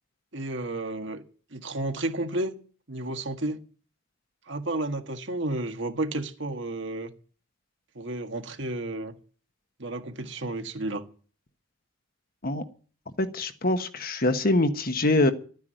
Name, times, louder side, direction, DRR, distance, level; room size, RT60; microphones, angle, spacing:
voice 1, 0.3-1.2 1.5-2.6 2.9-3.6 4.5-7.1 8.0-9.1 9.8-11.0, right 2 dB, 70° right, 6 dB, 1.7 m, -32 dB
voice 2, 13.2-15.3, left 2 dB, 50° left, 8 dB, 1.4 m, -24 dB
13.0 x 9.6 x 9.2 m, 0.41 s
head